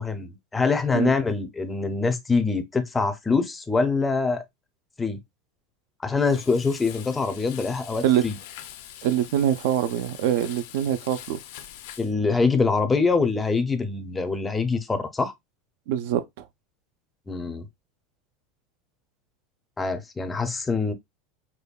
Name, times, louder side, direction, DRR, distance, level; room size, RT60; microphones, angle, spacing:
voice 1, 0.0-4.4 5.0-5.2 6.0-8.4 12.0-15.3 17.3-17.7 19.8-20.9, left 4 dB, 10° left, 0.5 m, -24 dB
Frying (food), 6.2-12.1, left 11 dB, 70° left, 0.6 m, -43 dB
voice 2, 9.0-11.4 15.9-16.5, right 10 dB, 65° right, 0.4 m, -24 dB
5.1 x 2.2 x 2.3 m
supercardioid pair, 160°, 0 cm